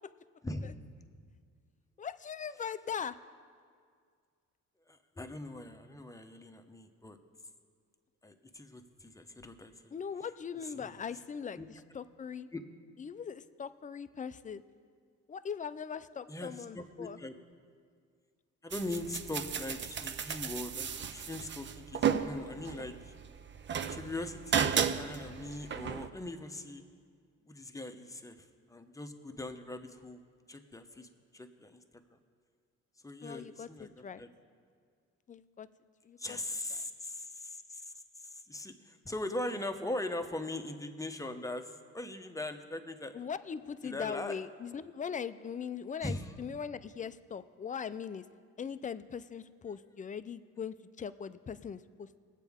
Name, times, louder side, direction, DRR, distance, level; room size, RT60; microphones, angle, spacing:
voice 1, 0.4-0.8 4.9-7.2 8.2-9.9 10.8-10.9 11.6-11.7 12.5-12.6 16.3-17.3 18.6-23.1 23.9-26.8 27.5-28.4 28.7-30.2 30.5-31.8 33.0-34.3 36.2-37.9 38.2-43.2 43.8-44.4 46.0-46.3, left 1 dB, 10° left, 6 dB, 0.9 m, -41 dB
voice 2, 2.0-3.2 9.9-12.5 13.0-14.6 15.3-17.2 33.2-34.2 35.3-35.7 36.0-36.4 43.1-48.3 48.6-52.2, left 7 dB, 25° left, 13 dB, 0.4 m, -40 dB
sound 1, 18.7-26.1, right 7 dB, 40° right, 0.6 m, -34 dB
20.0 x 8.3 x 3.6 m, 2.1 s
cardioid pair, 90°, 30 cm